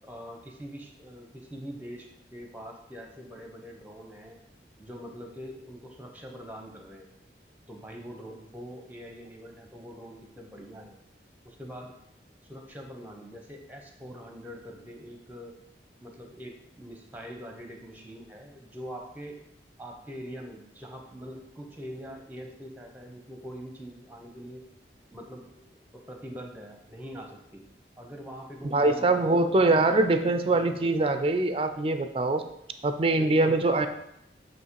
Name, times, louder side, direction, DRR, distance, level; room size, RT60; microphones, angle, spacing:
voice 1, 0.0-4.4 4.8-7.1 7.7-11.0 11.4-12.0 12.5-15.5 16.0-19.4 19.8-24.7 25.1-25.7 25.9-27.6 28.0-31.1 33.1-33.7, equal, 10° right, 3 dB, 0.8 m, -43 dB
voice 2, 28.6-32.4 32.8-33.9, right 2 dB, 30° right, 8 dB, 0.4 m, -23 dB
7.9 x 3.2 x 4.7 m, 0.80 s
head